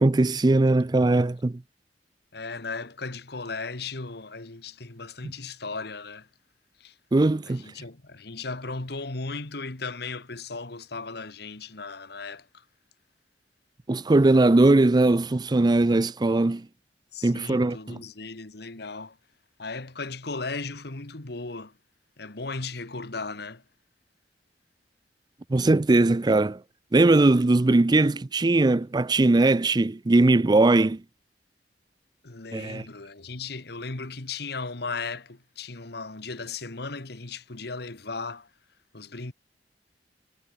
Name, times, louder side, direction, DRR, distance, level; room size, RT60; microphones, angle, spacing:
voice 1, 0.0-1.6 7.1-7.6 13.9-16.7 17.2-18.0 25.5-26.6 26.9-31.0 32.5-32.9, right 2 dB, 25° right, 0.4 m, -20 dB
voice 2, 2.3-6.3 6.8-6.9 7.5-12.6 17.1-19.2 19.6-21.7 22.2-23.6 32.2-38.5 38.9-39.3, left 3 dB, 65° left, 1.8 m, -36 dB
head